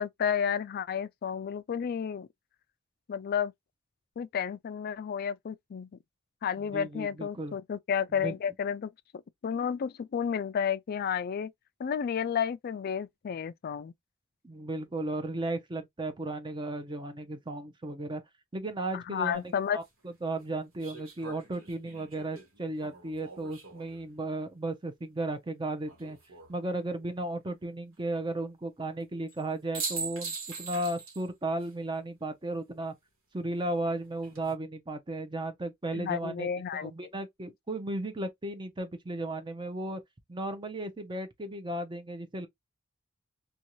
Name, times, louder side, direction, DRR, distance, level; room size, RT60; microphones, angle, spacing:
voice 1, 0.0-2.3 3.1-3.5 4.2-5.9 6.4-8.9 9.4-11.5 11.8-13.9 18.9-19.8 35.9-36.9, left 7 dB, 50° left, 0.3 m, -31 dB
voice 2, 6.6-7.6 8.2-8.3 14.4-18.2 18.5-26.2 26.5-32.9 33.3-40.0 40.3-42.5, right 2 dB, 25° right, 0.6 m, -35 dB
sound 1, 19.3-19.4 20.8-24.0 25.8-26.5 29.3-29.4 29.7-31.3 31.6-31.7 34.0-34.5, right 4 dB, 75° right, 1.2 m, -41 dB
2.7 x 2.3 x 2.9 m
head